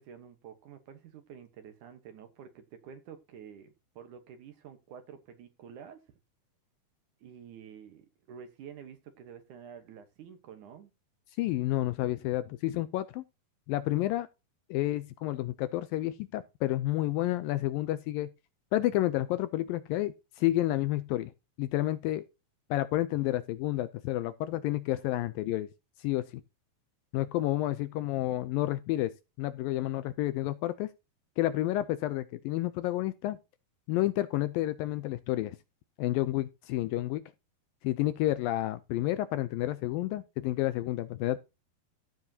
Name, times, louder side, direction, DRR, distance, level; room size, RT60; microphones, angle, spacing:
voice 1, 0.0-6.0 7.2-10.9, right 8 dB, 65° right, 2.3 m, -49 dB
voice 2, 11.4-13.2 13.7-14.3 14.7-18.3 18.7-21.3 21.6-22.2 22.7-25.7 26.0-26.2 27.1-30.9 31.4-33.4 33.9-35.6 36.0-37.2 37.8-41.4, left 15 dB, 80° left, 2.2 m, -30 dB
15.5 x 7.1 x 2.8 m
omnidirectional pair, 4.5 m